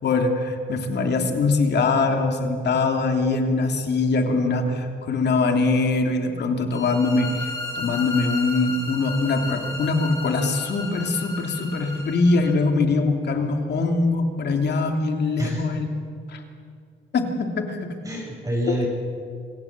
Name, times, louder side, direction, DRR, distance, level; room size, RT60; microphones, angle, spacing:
voice 1, 0.0-7.5 7.7-15.9 16.3-16.4 17.1-17.9 18.8-18.9, left 3 dB, 60° left, 4 dB, 2.9 m, -22 dB
sound 1, 6.7-12.5, left 2 dB, 15° left, 4.9 m, -34 dB
voice 2, 15.4-15.7 18.0-18.9, right 1 dB, 15° right, -2 dB, 7.7 m, -27 dB
26.0 x 16.5 x 7.5 m, 2.2 s
cardioid pair, 90°, 20 cm